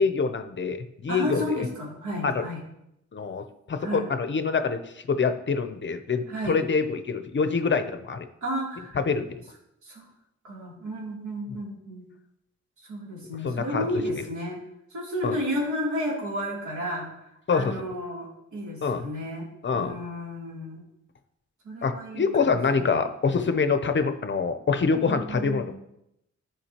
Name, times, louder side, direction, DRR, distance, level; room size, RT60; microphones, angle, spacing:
voice 1, 0.0-1.7 2.2-2.4 3.1-4.8 5.1-8.3 8.9-9.4 13.4-13.9 15.2-15.4 17.5-17.8 18.8-19.0 19.6-20.0 21.8-25.8, left 5 dB, 40° left, 9 dB, 0.6 m, -25 dB
voice 2, 1.1-2.6 3.8-4.1 6.3-6.6 8.4-9.0 9.8-10.1 10.4-12.0 12.9-14.6 14.9-17.1 17.5-19.5 19.7-20.8 21.6-23.0 25.0-25.8, equal, 90° right, -4 dB, 3.0 m, -32 dB
14.5 x 5.0 x 2.9 m, 0.83 s
wide cardioid pair, 160°, 29 cm